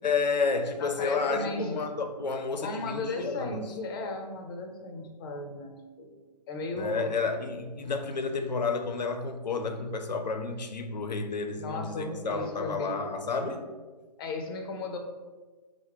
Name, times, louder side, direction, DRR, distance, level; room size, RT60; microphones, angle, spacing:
voice 1, 0.0-3.6 6.7-13.6, left 4 dB, 85° left, 0.6 m, -31 dB
voice 2, 0.8-1.8 2.6-6.2 6.5-7.1 11.6-13.0 14.2-15.0, left 2 dB, 35° left, 0.7 m, -36 dB
4.6 x 2.1 x 4.6 m
figure-of-eight pair, 140°, 21 cm